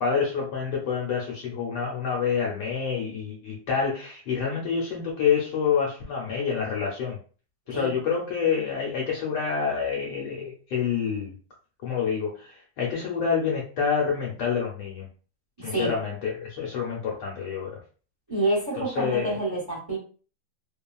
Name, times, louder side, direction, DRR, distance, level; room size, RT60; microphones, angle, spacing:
voice 1, 0.0-7.2 7.7-11.3 11.8-15.1 15.6-17.8 18.8-19.4, left 6 dB, 75° left, -3 dB, 1.3 m, -27 dB
voice 2, 15.6-15.9 18.3-20.0, right 2 dB, 20° right, -5 dB, 0.8 m, -27 dB
2.9 x 2.3 x 2.3 m, 0.40 s
omnidirectional pair, 1.9 m